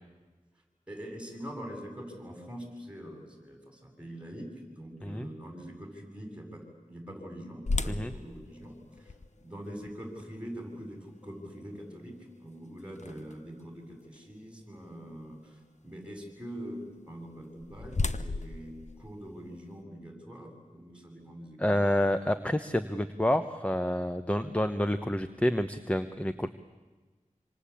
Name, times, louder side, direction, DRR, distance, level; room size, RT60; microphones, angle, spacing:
voice 1, 0.9-6.6 6.9-21.8, equal, 10° right, 2 dB, 7.9 m, -44 dB
sound 1, 7.7-13.6 14.2-14.3 14.9-15.1 17.2-19.8, left 3 dB, 60° left, 1.1 m, -37 dB
voice 2, 21.6-26.5, left 1 dB, 10° left, 9 dB, 1.1 m, -28 dB
26.5 x 26.0 x 8.6 m, 1.3 s
wide cardioid pair, 55°, 14 cm